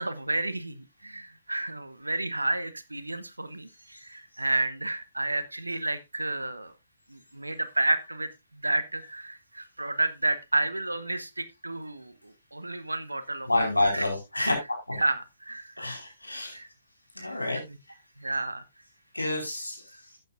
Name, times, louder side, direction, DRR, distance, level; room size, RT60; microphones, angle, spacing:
voice 1, 0.0-6.7 7.1-14.1 14.9-15.9 16.5-16.7 17.2-17.8 18.2-18.6, right 2 dB, 80° right, 13 dB, 0.9 m, -31 dB
voice 2, 13.5-15.0 15.8-16.6 17.1-17.6 19.1-19.8, left 2 dB, 85° left, 1 dB, 4.7 m, -28 dB
13.0 x 9.0 x 2.5 m, 0.22 s
figure-of-eight pair, 120°, 0 cm